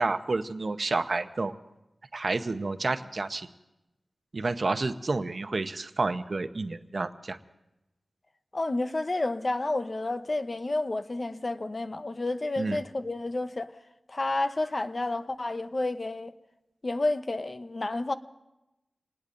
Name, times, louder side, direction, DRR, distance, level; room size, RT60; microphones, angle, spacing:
voice 1, 0.0-1.5 2.1-3.5 4.3-7.4 12.6-12.8, right 3 dB, 55° right, 0.8 m, -29 dB
voice 2, 8.5-13.7 14.1-16.3 16.8-18.1, left 2 dB, 40° left, 0.8 m, -30 dB
27.5 x 19.5 x 2.6 m
wide cardioid pair, 75°, 0 cm